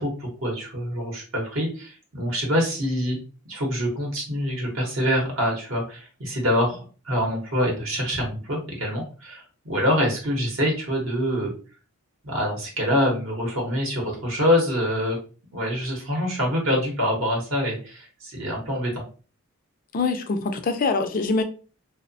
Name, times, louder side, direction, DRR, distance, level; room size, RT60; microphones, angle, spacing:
voice 1, 0.0-3.2 3.4-11.5 12.2-15.2 15.5-19.0, equal, 60° right, 0.8 m, -25 dB
voice 2, 19.9-21.4, left 3 dB, 40° left, 0.3 m, -24 dB
2.8 x 2.0 x 2.5 m
head